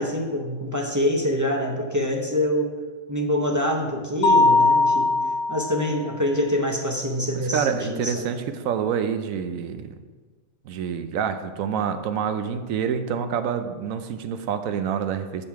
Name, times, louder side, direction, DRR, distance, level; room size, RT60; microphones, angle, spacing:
voice 1, 0.0-2.8 3.1-5.1 5.5-8.3, left 1 dB, 20° right, 1 dB, 0.6 m, -25 dB
Mallet percussion, 4.2-6.0, left 3 dB, 65° left, 0.9 m, -19 dB
voice 2, 7.3-9.9 10.6-15.4, right 7 dB, 85° right, 9 dB, 1.0 m, -27 dB
8.8 x 5.4 x 4.7 m, 1.4 s
omnidirectional pair, 1.4 m